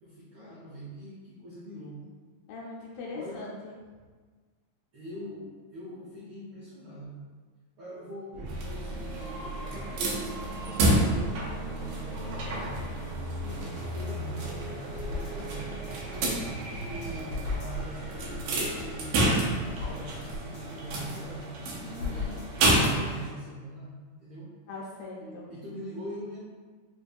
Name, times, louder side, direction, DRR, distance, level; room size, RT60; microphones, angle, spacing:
voice 1, 0.0-2.1 3.1-3.5 4.9-7.2 7.8-10.0 10.6-12.8 13.6-19.2 19.8-21.5 21.9-23.9 24.2-24.5 25.2-26.4, right 1 dB, 75° right, -9 dB, 1.3 m, -43 dB
voice 2, 2.5-3.8 10.5-10.8 13.4-13.7 17.0-17.1 21.8-22.4 24.7-25.5, left 3 dB, 75° left, -4 dB, 1.8 m, -41 dB
sound 1, 8.3-21.0, right 1 dB, 50° right, 1.4 m, -39 dB
sound 2, 8.5-23.3, right 1 dB, 90° right, 2.1 m, -31 dB
sound 3, 13.5-22.9 23.3-23.4, left 3 dB, 50° left, 2.0 m, -40 dB
5.1 x 2.6 x 2.3 m, 1.4 s
omnidirectional pair, 3.4 m